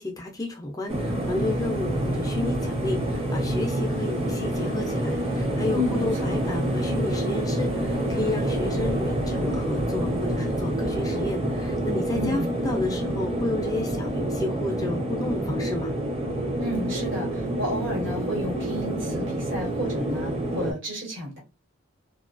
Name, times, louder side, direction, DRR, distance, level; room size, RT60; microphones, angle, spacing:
voice 1, 0.0-15.9, left 2 dB, 15° left, 1 dB, 0.4 m, -31 dB
sound 1, 0.9-20.7, right 1 dB, 30° right, 0.6 m, -27 dB
voice 2, 12.1-12.5 16.6-21.4, left 1 dB, 65° right, -2 dB, 1.2 m, -32 dB
2.2 x 2.2 x 2.4 m, 0.27 s
head